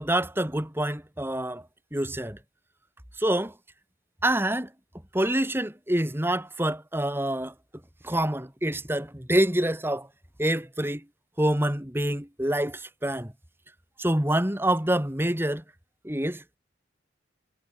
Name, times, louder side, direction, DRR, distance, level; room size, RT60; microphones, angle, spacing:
voice 1, 0.0-1.6 1.9-2.4 3.2-3.5 4.2-4.7 5.1-7.5 8.0-10.1 10.4-11.0 11.4-13.3 14.0-15.6 16.0-16.6, right 1 dB, 10° right, 2.5 m, -26 dB
head